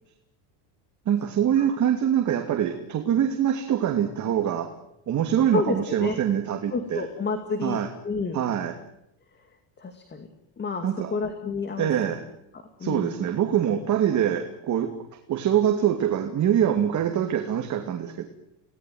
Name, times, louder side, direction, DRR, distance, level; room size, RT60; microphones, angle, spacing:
voice 1, 1.1-4.7 5.1-7.1 7.6-7.9 8.3-8.8 10.8-11.2 11.8-12.2 12.8-14.9 15.3-18.3, right 9 dB, 35° right, 4 dB, 2.7 m, -24 dB
voice 2, 5.5-6.2 6.7-8.4 9.8-10.3 10.6-11.9 12.5-13.2, left 4 dB, 20° left, 7 dB, 2.3 m, -30 dB
28.5 x 18.5 x 9.5 m, 0.80 s
cardioid pair, 155°, 50 cm